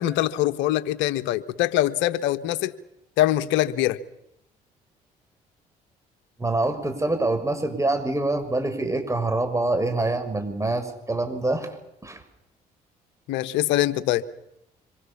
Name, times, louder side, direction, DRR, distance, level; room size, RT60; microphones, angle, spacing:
voice 1, 0.0-2.7 3.2-4.0 13.3-14.2, left 14 dB, 75° left, 11 dB, 1.3 m, -23 dB
voice 2, 6.4-11.7 12.0-12.2, right 2 dB, 15° right, 7 dB, 6.6 m, -25 dB
25.5 x 24.0 x 7.3 m, 0.83 s
hypercardioid pair, 55°, 19 cm